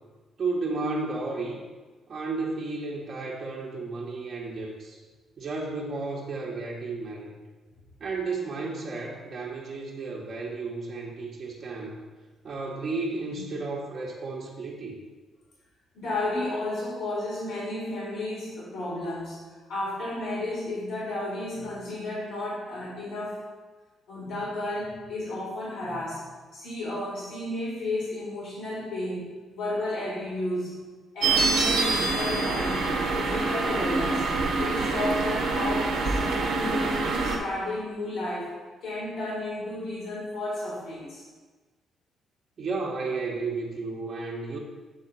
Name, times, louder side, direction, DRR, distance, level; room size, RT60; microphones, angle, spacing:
voice 1, 0.4-1.6 2.1-5.0 5.4-7.4 8.0-12.0 12.4-15.0 42.6-44.6, right 3 dB, 50° right, -3 dB, 1.0 m, -33 dB
voice 2, 15.9-19.4 19.7-23.4 24.1-26.2 26.5-29.2 29.5-30.7 31.1-34.3 34.6-38.5 38.8-41.2, left 1 dB, 90° left, -6 dB, 2.0 m, -32 dB
sound 1, 31.2-37.4, right 3 dB, 85° right, 1.0 m, -26 dB
8.1 x 3.9 x 4.5 m, 1.4 s
cardioid pair, 90°, 0 cm